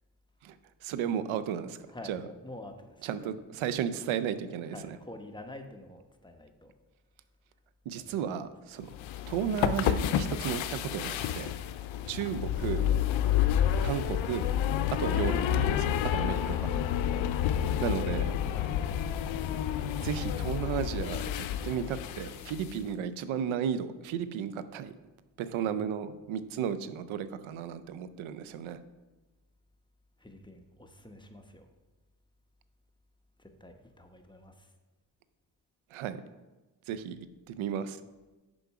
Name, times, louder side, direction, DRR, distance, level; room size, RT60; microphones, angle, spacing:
voice 1, 0.8-1.8 2.0-2.2 3.0-5.0 7.9-8.9 9.3-11.5 12.1-12.9 13.8-14.5 15.0-16.7 17.8-18.3 20.0-21.3 21.6-24.9 25.4-28.8 35.9-36.2 36.9-37.2 37.5-38.0, right 8 dB, 80° right, 13 dB, 0.6 m, -34 dB
voice 2, 1.8-3.1 4.6-6.7 7.9-8.5 11.9-12.4 18.5-18.8 30.2-31.7 33.4-34.7, left 1 dB, 10° left, 4 dB, 1.0 m, -48 dB
sound 1, 8.9-22.8, left 10 dB, 75° left, 0.6 m, -29 dB
6.9 x 5.3 x 4.8 m, 1.2 s
supercardioid pair, 50°, 47 cm